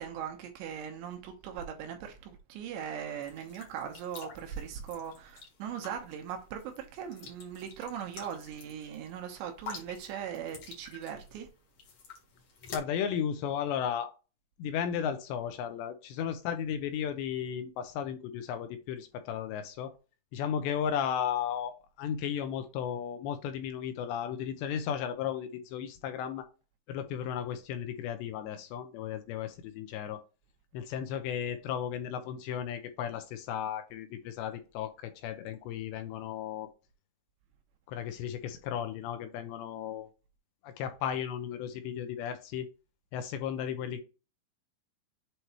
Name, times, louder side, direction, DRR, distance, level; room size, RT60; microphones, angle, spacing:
voice 1, 0.0-11.5, right 8 dB, 75° right, 3.1 m, -40 dB
sound 1, 3.2-12.8, left 4 dB, 55° left, 1.9 m, -48 dB
voice 2, 12.7-14.1 14.6-19.9 20.3-21.7 22.0-26.5 26.9-30.2 30.7-36.7 37.9-40.1 40.6-42.7 43.1-44.0, left 8 dB, 80° left, 2.7 m, -35 dB
8.0 x 3.0 x 4.3 m
omnidirectional pair, 5.4 m